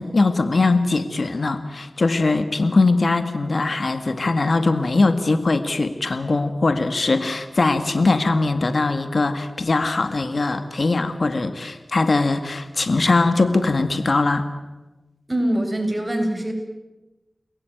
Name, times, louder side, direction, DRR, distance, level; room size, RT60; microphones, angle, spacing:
voice 1, 0.0-14.4, left 3 dB, 65° left, 8 dB, 2.0 m, -21 dB
voice 2, 15.3-16.5, right 1 dB, 30° right, 5 dB, 7.3 m, -23 dB
29.5 x 21.5 x 9.3 m, 1.1 s
cardioid pair, 40°, 0 cm